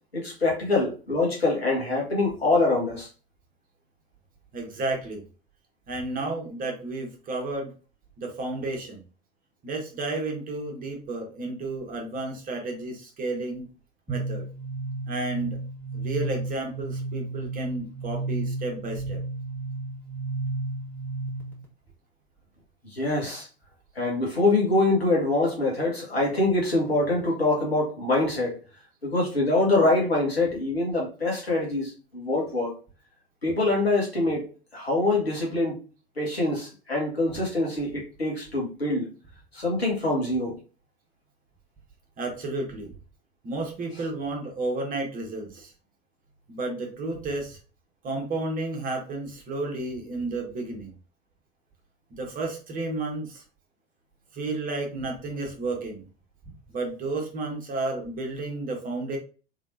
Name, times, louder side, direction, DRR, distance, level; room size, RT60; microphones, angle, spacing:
voice 1, 0.1-3.1 22.8-23.5 24.0-28.6 29.0-32.7 33.4-35.8 36.2-39.1 39.5-40.6, left 2 dB, 85° left, -3 dB, 1.6 m, -24 dB
voice 2, 4.5-5.2 5.9-7.7 8.2-9.0 9.6-13.7 14.1-14.5 15.1-15.6 15.9-19.2 42.2-42.9 43.4-45.7 46.5-47.6 48.0-50.9 52.2-53.4 54.3-56.1 56.7-59.2, right 2 dB, 30° right, 2 dB, 1.3 m, -32 dB
sound 1, 14.1-21.6, right 3 dB, 5° left, 1.7 m, -32 dB
3.6 x 3.4 x 2.6 m, 0.36 s
figure-of-eight pair, 80°, 30 cm